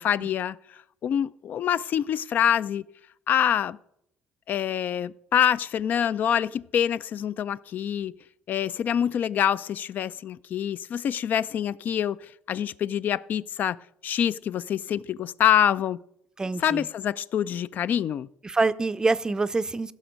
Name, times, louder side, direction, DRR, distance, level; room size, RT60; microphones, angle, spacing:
voice 1, 0.0-2.8 3.3-3.8 4.5-8.1 8.5-13.8 14.0-16.0 16.6-18.3, left 9 dB, 55° left, 0.4 m, -26 dB
voice 2, 16.4-16.8 18.4-19.9, right 3 dB, 20° right, 0.5 m, -25 dB
15.5 x 6.1 x 5.2 m
cardioid pair, 100°, 4 cm